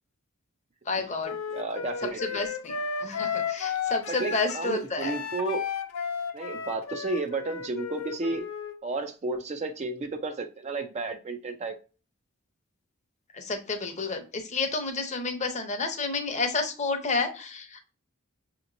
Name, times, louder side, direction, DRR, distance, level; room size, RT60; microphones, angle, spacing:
voice 1, 0.9-1.3 2.3-5.1 13.3-17.8, left 3 dB, 35° left, 6 dB, 0.7 m, -30 dB
Wind instrument woodwind instrument, 1.2-8.8, left 6 dB, 70° left, 0.5 m, -33 dB
voice 2, 1.5-2.5 4.1-5.6 6.3-8.5 8.8-11.8, right 3 dB, 30° right, 7 dB, 0.4 m, -32 dB
5.8 x 2.9 x 2.6 m, 0.34 s
head